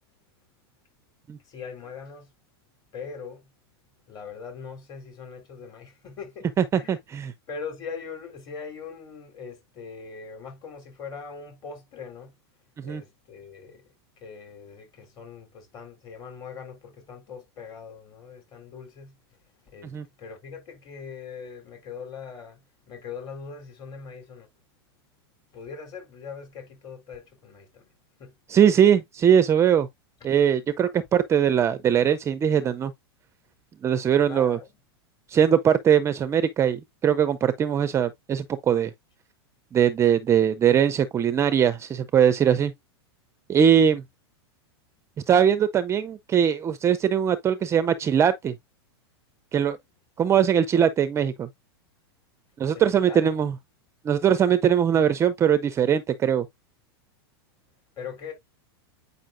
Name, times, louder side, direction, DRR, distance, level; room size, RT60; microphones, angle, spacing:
voice 1, 1.4-2.3 2.9-3.5 4.1-7.0 7.5-12.3 12.8-19.4 19.6-24.5 25.5-27.9 28.2-28.3 34.3-34.7 52.7-53.2 58.0-58.3, left 5 dB, 30° left, 3.6 m, -41 dB
voice 2, 6.6-7.3 12.8-13.0 19.9-20.0 28.5-29.9 30.2-32.9 33.8-34.6 35.3-38.9 39.7-42.7 43.5-44.0 45.3-48.5 49.5-49.8 50.2-51.5 52.6-53.5 54.0-56.5, right 8 dB, 20° right, 0.5 m, -21 dB
8.8 x 5.4 x 2.6 m
supercardioid pair, 135°, 14 cm